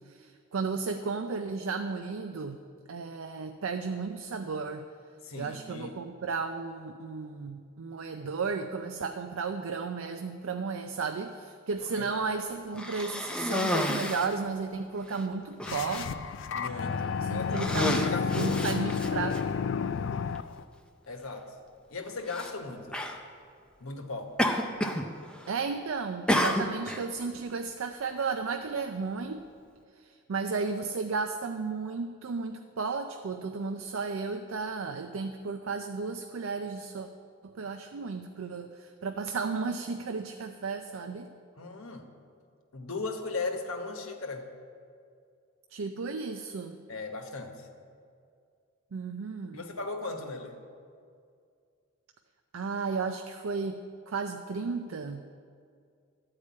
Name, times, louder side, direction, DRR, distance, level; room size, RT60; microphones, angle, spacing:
voice 1, 0.1-2.6 2.9-4.9 5.4-16.1 17.2-18.1 18.4-19.4 25.5-29.4 30.0-37.1 37.4-41.3 45.7-46.8 48.9-49.6 52.5-53.8 54.1-55.2, right 4 dB, 80° right, 6 dB, 0.5 m, -34 dB
voice 2, 5.2-5.9 11.8-12.1 16.5-18.6 21.1-21.5 21.9-23.0 23.8-24.3 41.6-42.1 42.7-44.5 46.9-47.7 49.5-50.6, left 3 dB, 85° left, 4 dB, 1.1 m, -37 dB
Cough, 12.7-14.4 15.1-15.2 15.6-16.1 16.8-17.1 17.5-19.4 20.4-20.5 22.3-22.5 22.9-23.2 24.4-25.1 25.3-25.8 26.3-27.0, left 1 dB, 5° left, 0.5 m, -30 dB
sound 1, 15.7-20.6, left 6 dB, 60° left, 0.3 m, -31 dB
12.0 x 4.9 x 8.4 m, 2.3 s
head